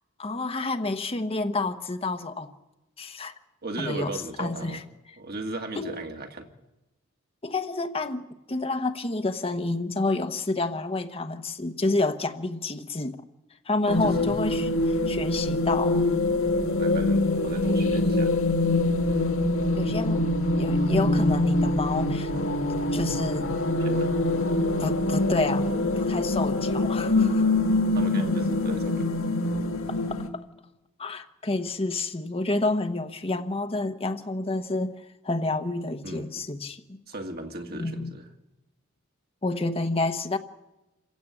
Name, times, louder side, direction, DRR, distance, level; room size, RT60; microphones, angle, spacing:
voice 1, 0.2-2.5 3.0-3.3 3.8-4.1 4.4-4.8 5.7-5.9 7.4-13.2 13.7-14.7 15.1-16.1 19.8-22.3 22.9-23.5 24.8-25.7 26.0-27.5 29.9-30.2 31.0-37.0 37.7-38.1 39.4-40.4, left 2 dB, 30° left, 1.1 m, -29 dB
voice 2, 3.6-4.9 5.2-6.5 13.9-14.7 16.8-18.4 23.8-24.1 27.9-29.1 36.0-36.4 37.1-38.3, right 2 dB, 50° right, 2.3 m, -36 dB
sound 1, 13.9-30.3, left 2 dB, 90° left, 2.0 m, -24 dB
28.0 x 15.5 x 8.6 m
head